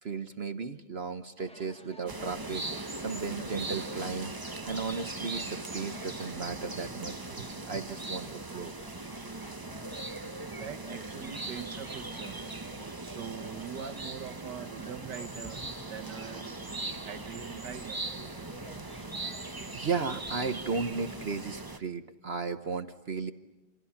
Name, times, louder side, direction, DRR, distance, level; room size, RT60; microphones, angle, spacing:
voice 1, 0.0-8.7 10.4-10.6 19.6-23.3, right 4 dB, 45° right, 9 dB, 1.0 m, -35 dB
sound 1, 1.4-21.3, equal, 5° left, 1.0 m, -52 dB
sound 2, 2.1-21.8, right 2 dB, 20° right, 0.6 m, -40 dB
voice 2, 10.6-12.4 13.0-15.6 15.9-16.5 17.1-18.0, right 8 dB, 70° right, 9 dB, 1.8 m, -43 dB
29.0 x 27.0 x 5.8 m, 1.1 s
omnidirectional pair, 1.9 m